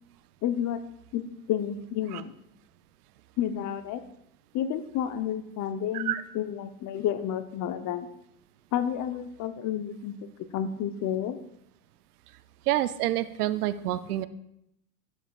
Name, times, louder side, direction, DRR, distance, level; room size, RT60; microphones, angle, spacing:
voice 1, 0.4-0.8 1.1-1.2 1.5-2.3 3.4-4.0 4.5-8.1 8.7-11.4, left 9 dB, 40° left, 11 dB, 0.8 m, -30 dB
voice 2, 12.7-14.3, right 14 dB, 75° right, 14 dB, 0.6 m, -27 dB
12.5 x 7.9 x 2.4 m, 0.79 s
hypercardioid pair, 85°, 46 cm